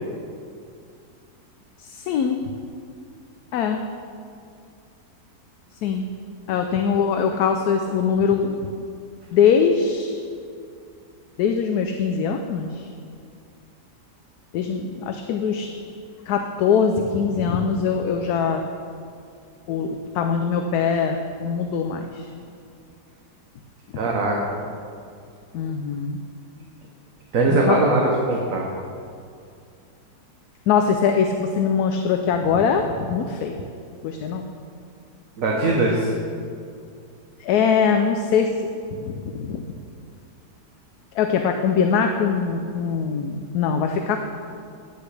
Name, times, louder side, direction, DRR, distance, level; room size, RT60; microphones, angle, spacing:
voice 1, 1.8-2.5 3.5-3.8 5.8-6.1 6.5-8.6 9.3-10.2 11.4-12.9 14.5-15.7 16.3-18.6 19.7-22.3 25.5-26.2 27.5-27.8 30.7-33.6 34.0-34.5 37.4-38.5 38.9-39.6 41.1-44.2, left 6 dB, 70° left, 5 dB, 1.1 m, -22 dB
voice 2, 24.0-24.4 27.3-28.7 35.4-36.1, right 2 dB, 55° right, -2 dB, 1.4 m, -20 dB
16.0 x 8.3 x 3.3 m, 2.4 s
omnidirectional pair, 1.8 m